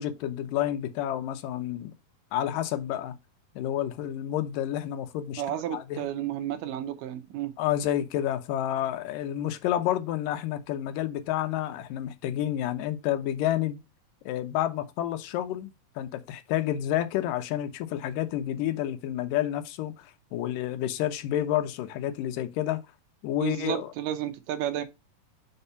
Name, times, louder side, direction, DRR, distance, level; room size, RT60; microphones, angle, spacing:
voice 1, 0.0-1.9 2.3-3.2 3.6-5.4 5.7-6.0 7.6-13.8 14.3-22.8 23.2-23.9, left 12 dB, 75° left, 2.2 m, -29 dB
voice 2, 5.4-7.5 23.4-24.8, right 11 dB, 75° right, 2.2 m, -32 dB
5.5 x 4.4 x 5.5 m
omnidirectional pair, 4.1 m